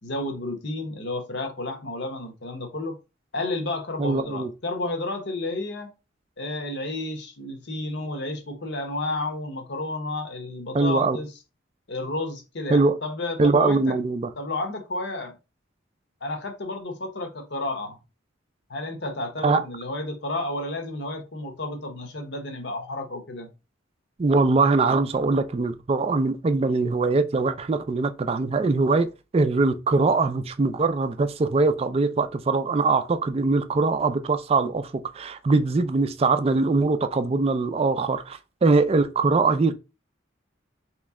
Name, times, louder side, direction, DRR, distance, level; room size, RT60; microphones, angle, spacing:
voice 1, 0.0-2.9 3.3-5.9 6.4-11.3 11.9-14.0 14.4-15.4 16.2-18.0 18.7-23.5, left 2 dB, 60° left, 0.9 m, -31 dB
voice 2, 4.0-4.5 10.7-11.2 12.7-13.0 13.4-14.3 19.4-19.6 24.2-29.1 29.3-39.7, right 3 dB, 30° right, 0.3 m, -22 dB
3.2 x 3.0 x 3.6 m
head